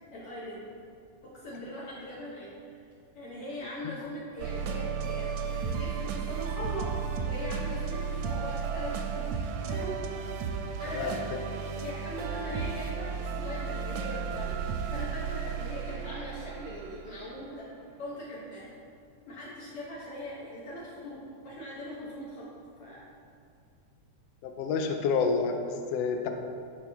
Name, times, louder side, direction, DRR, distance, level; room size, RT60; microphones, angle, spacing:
voice 1, 0.1-0.7 1.2-2.8 3.1-6.9 7.2-9.4 9.7-10.0 10.8-11.2 11.5-14.6 14.9-17.7 18.0-18.8 19.3-22.5 22.8-23.1, equal, 60° left, -7 dB, 1.9 m, -40 dB
sound 1, 4.4-17.6, right 6 dB, 80° right, 1.7 m, -34 dB
voice 2, 24.4-25.5 25.9-26.3, left 5 dB, 80° left, 4 dB, 1.5 m, -28 dB
9.0 x 4.8 x 3.5 m, 2.3 s
omnidirectional pair, 3.3 m